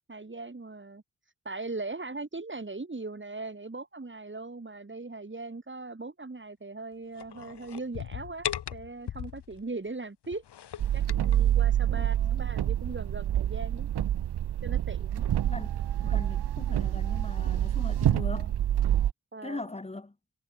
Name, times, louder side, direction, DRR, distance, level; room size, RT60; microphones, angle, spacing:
voice 1, 0.1-1.0 1.4-10.4 10.9-13.9 14.6-15.2 19.3-19.7, right 3 dB, 30° right, 4.4 m, -39 dB
sound 1, 7.2-9.6 10.2-11.4, left 10 dB, 85° left, 2.2 m, -38 dB
sound 2, 10.8-19.1, right 11 dB, 75° right, 1.0 m, -27 dB
voice 2, 11.9-12.5 15.5-18.5 19.4-20.1, left 2 dB, 15° left, 1.5 m, -40 dB
cardioid pair, 55°, 39 cm